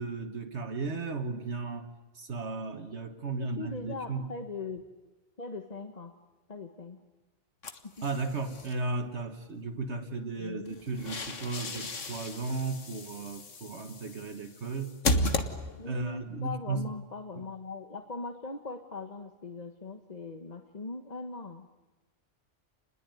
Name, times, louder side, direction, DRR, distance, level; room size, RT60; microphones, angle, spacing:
voice 1, 0.0-1.9 2.2-4.3 8.0-15.0 15.9-16.9, right 3 dB, 65° right, 6 dB, 1.7 m, -35 dB
voice 2, 3.3-4.9 5.4-6.1 6.5-7.0 7.8-7.9 10.3-10.8 15.8-21.7, left 3 dB, 35° left, 6 dB, 1.3 m, -40 dB
sound 1, 7.6-8.7 10.7-16.0, left 2 dB, 90° left, 1.9 m, -34 dB
29.5 x 21.0 x 9.3 m, 1.2 s
omnidirectional pair, 1.2 m